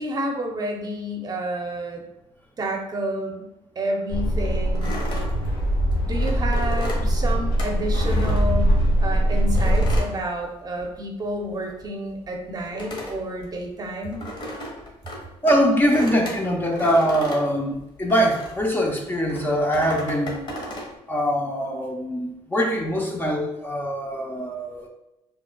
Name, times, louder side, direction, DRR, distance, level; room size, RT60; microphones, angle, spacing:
voice 1, 0.0-2.0 2.6-3.5 3.8-5.0 6.0-14.3, right 1 dB, 35° right, 2 dB, 0.7 m, -30 dB
sound 1, 4.1-10.0, equal, 85° left, 1.1 m, -22 dB
sound 2, 4.8-9.1 9.6-11.0 11.3-18.7 19.3-20.9, left 1 dB, 45° left, 1.2 m, -35 dB
voice 2, 15.4-20.4 21.1-24.9, equal, 15° left, 0 dB, 0.7 m, -23 dB
4.5 x 3.1 x 2.3 m, 0.90 s
cardioid pair, 90°, 12 cm